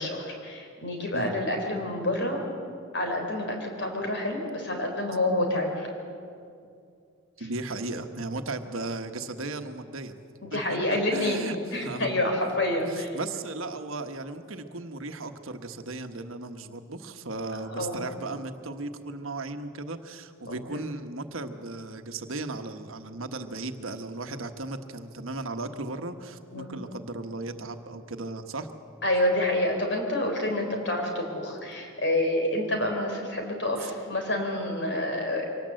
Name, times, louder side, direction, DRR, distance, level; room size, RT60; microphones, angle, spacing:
voice 1, 0.0-2.4 2.9-5.9 10.4-13.2 17.7-18.0 20.5-20.6 26.5-26.7 29.0-35.5, left 1 dB, 55° left, 2 dB, 4.0 m, -28 dB
voice 2, 7.4-10.1 10.7-12.2 12.9-28.7, right 2 dB, 75° right, 7 dB, 1.3 m, -36 dB
24.0 x 18.5 x 7.7 m, 2.5 s
head